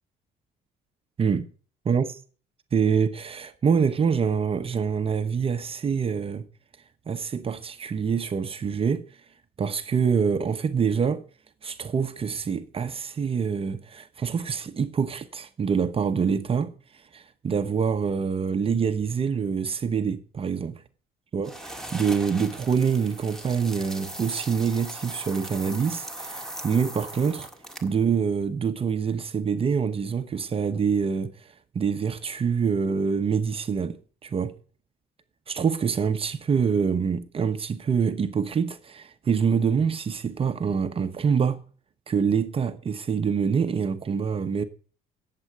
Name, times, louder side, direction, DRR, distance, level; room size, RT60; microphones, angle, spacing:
voice 1, 2.7-6.5 7.1-9.0 9.6-11.2 11.6-16.7 17.1-20.8 21.3-27.5 27.8-31.3 31.7-34.5 35.5-41.6 42.1-44.6, right 6 dB, 35° right, 0.9 m, -25 dB
sound 1, 21.4-28.0, right 1 dB, 5° left, 1.7 m, -39 dB
9.6 x 7.6 x 5.9 m
cardioid pair, 110°, 17 cm